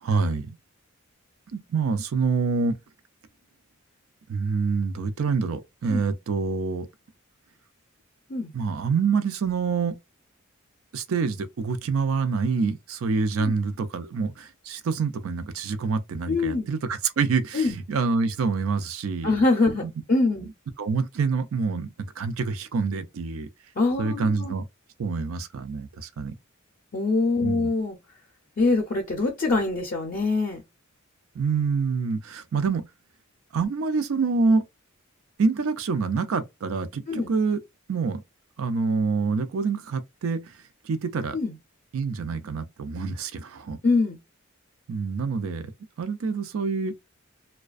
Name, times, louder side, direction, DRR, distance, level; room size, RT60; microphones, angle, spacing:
voice 1, 0.0-0.5 1.5-2.8 4.3-6.9 8.5-10.0 10.9-19.3 19.8-19.9 20.8-23.5 24.0-24.6 25.0-26.3 27.4-27.7 31.3-32.8 33.5-34.6 35.4-37.6 37.9-38.2 38.6-40.5 40.8-41.4 41.9-43.8 44.9-45.7 46.0-46.9, right 4 dB, 75° right, 0.4 m, -26 dB
voice 2, 16.3-16.7 17.5-17.8 19.2-20.5 23.8-24.5 26.9-28.0 28.6-30.6 37.1-37.3 41.3-41.5 43.8-44.2, left 3 dB, 45° left, 0.5 m, -24 dB
2.4 x 2.2 x 2.3 m
head